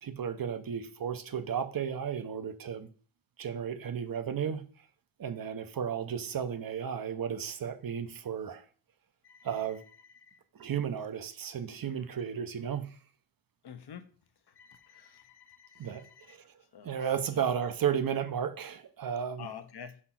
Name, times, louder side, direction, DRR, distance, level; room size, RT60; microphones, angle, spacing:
voice 1, 0.0-2.9 3.4-4.7 5.2-8.6 9.4-9.8 10.5-13.0 15.8-16.4 16.8-19.5, right 8 dB, 50° right, 0.7 m, -34 dB
voice 2, 10.0-10.4 11.9-12.0 13.6-14.1 14.5-16.4 16.7-16.9 19.4-20.0, left 8 dB, 60° left, 0.8 m, -49 dB
5.1 x 4.2 x 5.7 m
wide cardioid pair, 130°, 46 cm